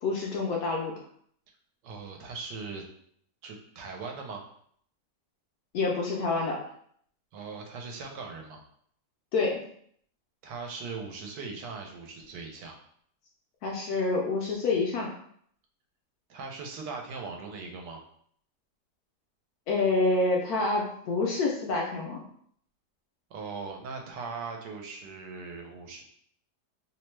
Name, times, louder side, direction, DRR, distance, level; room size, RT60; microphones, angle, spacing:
voice 1, 0.0-0.9 5.7-6.6 9.3-9.6 13.6-15.1 19.7-22.2, left 3 dB, 70° left, -1 dB, 0.9 m, -27 dB
voice 2, 1.8-2.8 3.4-4.4 7.3-8.6 10.4-12.7 16.3-18.0 23.3-26.0, right 4 dB, 85° right, 2 dB, 1.2 m, -39 dB
3.0 x 2.1 x 3.1 m, 0.63 s
omnidirectional pair, 1.8 m